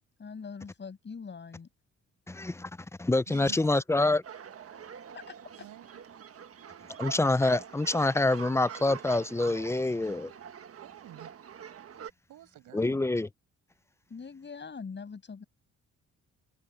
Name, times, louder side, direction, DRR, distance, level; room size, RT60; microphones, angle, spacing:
voice 1, 0.2-1.7 3.4-3.8 5.1-5.4 14.1-15.4, left 5 dB, 35° left, 7.7 m, -43 dB
voice 2, 2.3-2.7 3.0-4.2 7.0-10.3 12.7-13.3, left 2 dB, 10° left, 0.5 m, -26 dB
voice 3, 3.3-3.6 5.6-6.0 10.8-11.3 12.3-13.1, right 13 dB, 80° right, 7.4 m, -49 dB
sound 1, 4.2-12.1, right 8 dB, 50° right, 1.5 m, -45 dB
cardioid pair, 90°, 30 cm